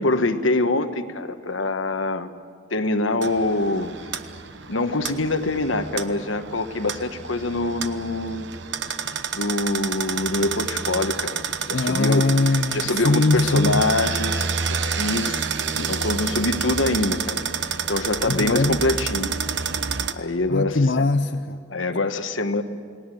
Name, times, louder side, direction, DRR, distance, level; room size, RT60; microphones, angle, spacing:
voice 1, 0.0-2.3 2.7-3.9 4.7-8.5 8.9-12.2 12.7-15.4 15.9-19.3 20.1-21.0 21.7-22.6, left 2 dB, 85° left, 8 dB, 1.4 m, -25 dB
sound 1, 3.2-20.1, right 6 dB, 65° right, 1.0 m, -29 dB
voice 2, 11.7-13.8 15.7-16.0 18.2-18.8 20.5-21.6, left 3 dB, 60° left, 8 dB, 0.6 m, -21 dB
29.5 x 19.5 x 7.8 m, 2.2 s
head